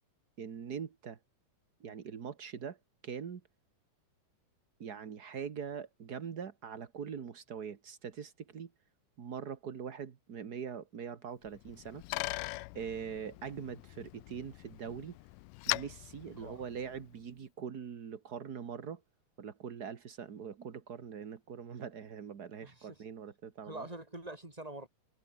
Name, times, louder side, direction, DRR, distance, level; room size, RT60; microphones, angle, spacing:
voice 1, 0.4-1.2 1.8-2.8 3.0-3.4 4.8-8.7 9.2-12.0 12.7-15.2 15.7-19.0 19.4-23.9, right 7 dB, 80° right, 0.8 m, -42 dB
Bicycle, 11.5-17.2, left 21 dB, 85° left, 1.9 m, -41 dB
voice 2, 22.6-23.0 23.7-24.9, right 2 dB, 10° right, 3.8 m, -45 dB
omnidirectional pair, 4.2 m